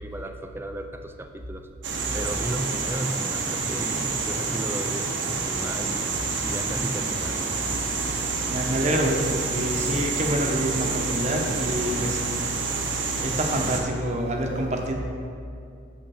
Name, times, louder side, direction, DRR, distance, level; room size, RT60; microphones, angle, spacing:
voice 1, 0.0-1.7 2.1-6.2 6.4-7.4 12.1-12.2, right 1 dB, 10° right, 6 dB, 0.4 m, -34 dB
sound 1, 1.8-13.8, right 4 dB, 70° right, 0.9 m, -28 dB
sound 2, 4.0-12.6, right 1 dB, 25° left, 1.6 m, -46 dB
voice 2, 8.5-12.2 13.2-14.9, right 1 dB, 35° right, 1 dB, 0.9 m, -26 dB
9.0 x 6.5 x 4.2 m, 2.5 s
head